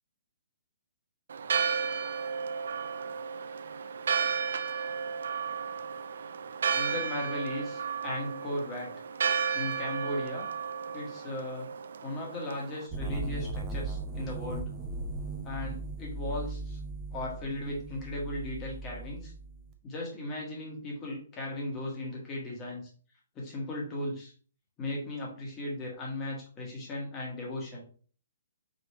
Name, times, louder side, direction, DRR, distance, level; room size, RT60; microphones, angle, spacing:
Church bell, 1.3-12.9, right 6 dB, 70° right, 0.4 m, -33 dB
voice 1, 6.7-8.9 9.5-10.5 10.9-11.7 12.0-14.7 15.4-16.8 17.1-19.3 19.8-22.8 23.3-24.3 24.8-27.8, left 1 dB, 20° left, -2 dB, 1.5 m, -36 dB
sound 1, 12.9-19.7, right 3 dB, 20° right, 0.6 m, -38 dB
5.2 x 3.0 x 3.1 m, 0.42 s
hypercardioid pair, 165°, 0 cm